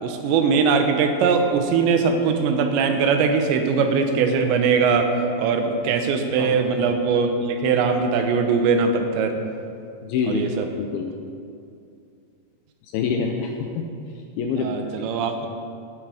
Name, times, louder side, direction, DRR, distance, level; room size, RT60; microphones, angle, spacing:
voice 1, 0.0-5.1 5.4-9.4 10.3-10.7 14.6-15.5, right 5 dB, 85° right, 6 dB, 3.2 m, -21 dB
voice 2, 10.0-10.5 10.8-11.1 12.9-13.9 14.4-14.9, left 5 dB, 85° left, 2 dB, 2.2 m, -26 dB
13.5 x 9.1 x 4.9 m, 2.5 s
omnidirectional pair, 5.0 m